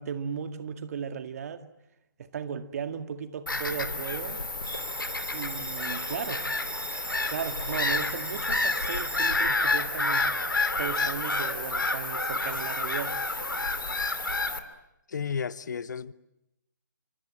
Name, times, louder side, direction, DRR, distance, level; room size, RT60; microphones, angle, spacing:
voice 1, 0.0-1.6 2.2-4.4 5.3-6.5 7.2-10.3 10.8-13.5, right 7 dB, 50° right, 2.0 m, -36 dB
Bird vocalization bird call bird song / Gull seagull, 3.5-14.6, left 2 dB, 85° left, 2.8 m, -29 dB
Bell, 4.6-11.6, right 3 dB, 10° right, 4.2 m, -44 dB
voice 2, 15.1-16.1, left 6 dB, 60° left, 1.1 m, -32 dB
28.5 x 25.5 x 7.5 m
figure-of-eight pair, 140°, 11 cm